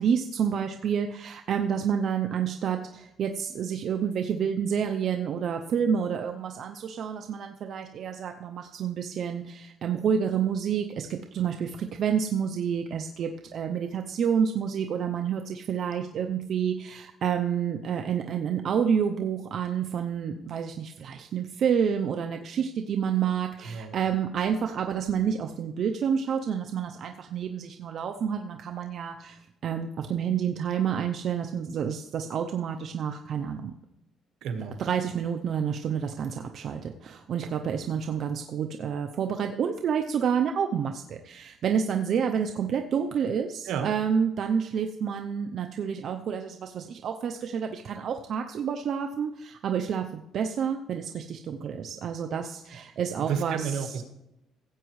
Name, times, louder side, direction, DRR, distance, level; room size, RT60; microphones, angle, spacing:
voice 1, 0.0-33.7 34.8-54.0, right 7 dB, 55° right, 5 dB, 0.6 m, -29 dB
voice 2, 23.6-23.9 34.4-34.8 43.6-43.9 53.3-54.0, right 7 dB, 80° right, 6 dB, 1.4 m, -31 dB
16.0 x 8.0 x 3.1 m, 0.88 s
cardioid pair, 130°, 0 cm